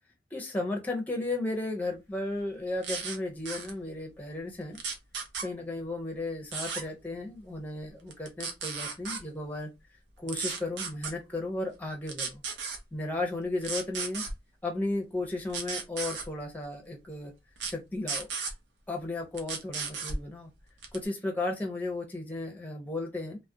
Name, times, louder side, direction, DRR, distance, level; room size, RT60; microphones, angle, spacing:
voice 1, 0.3-4.8 5.4-9.7 10.2-12.4 12.9-14.2 14.6-17.3 17.7-18.3 18.9-20.5 20.9-23.4, left 2 dB, 10° left, 0.5 m, -34 dB
sound 1, 2.8-3.2 3.5-3.7 4.7-5.5 6.5-6.8 8.1-9.2 10.3-11.1 12.1-12.8 13.6-14.3 15.5-16.3 17.6-17.7 18.1-18.5 19.4-20.2 20.8-21.1, right 5 dB, 85° right, 0.6 m, -34 dB
2.3 x 2.1 x 2.6 m
head